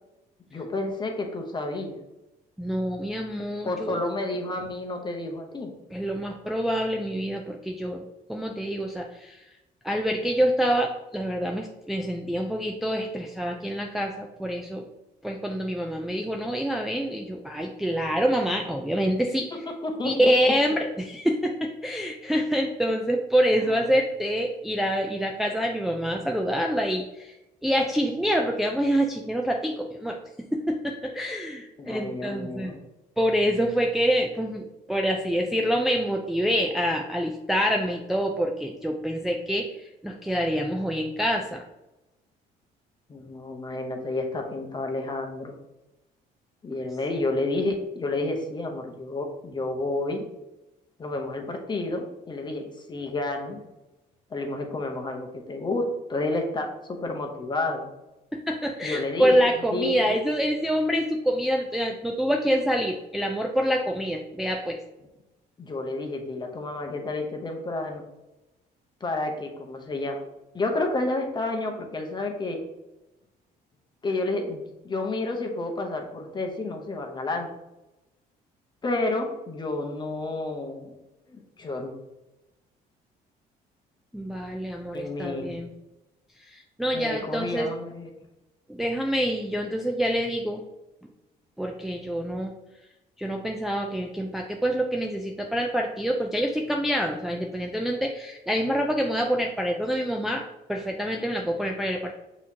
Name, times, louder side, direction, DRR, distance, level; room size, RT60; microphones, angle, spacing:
voice 1, 0.5-1.9 3.6-5.7 19.8-20.3 23.6-23.8 31.8-32.8 43.1-45.6 46.6-50.2 51.0-53.6 54.3-57.9 58.8-59.4 59.7-60.2 65.6-68.0 69.0-70.2 70.5-72.6 74.0-77.5 78.8-81.0 81.3-81.9 84.9-85.6 86.9-88.1, left 2 dB, 25° left, 3 dB, 0.9 m, -30 dB
voice 2, 2.6-4.0 5.9-9.5 9.8-14.9 15.2-19.7 20.0-27.4 27.6-30.2 30.5-32.8 33.2-41.6 58.3-64.8 84.1-85.7 86.4-87.7 88.7-90.6 91.6-92.5 93.2-102.1, equal, ahead, 1 dB, 0.4 m, -26 dB
6.2 x 3.0 x 2.8 m, 0.96 s
cardioid pair, 110°, 17 cm